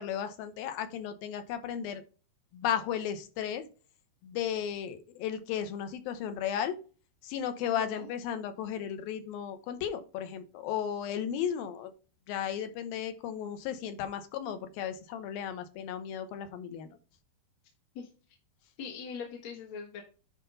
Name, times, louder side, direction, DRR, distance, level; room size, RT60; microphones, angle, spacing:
voice 1, 0.0-2.0 2.5-3.6 4.2-6.8 7.2-11.9 12.3-17.0, left 9 dB, 75° left, 9 dB, 2.6 m, -35 dB
voice 2, 7.6-8.1 18.0-18.1 18.8-20.0, left 6 dB, 55° left, -2 dB, 2.3 m, -41 dB
10.5 x 4.4 x 4.0 m, 0.36 s
omnidirectional pair, 4.5 m